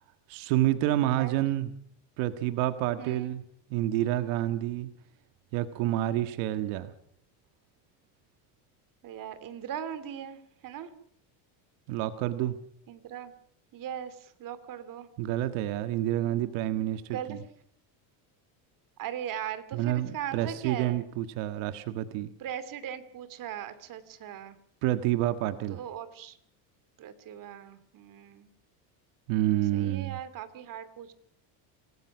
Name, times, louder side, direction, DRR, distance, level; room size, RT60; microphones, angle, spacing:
voice 1, 0.3-1.7 2.2-3.4 3.7-4.9 5.5-6.9 11.9-12.6 15.2-17.4 19.7-22.3 24.8-25.8 29.3-30.2, right 14 dB, 85° right, 9 dB, 1.7 m, -28 dB
voice 2, 1.2-1.5 3.0-3.3 9.0-10.9 12.9-13.3 13.7-15.1 17.1-17.4 19.0-21.0 22.4-24.6 25.7-26.4 27.0-28.5 29.7-31.1, right 10 dB, 45° right, 12 dB, 2.7 m, -39 dB
27.0 x 19.0 x 6.1 m, 0.63 s
cardioid pair, 150°, 45 cm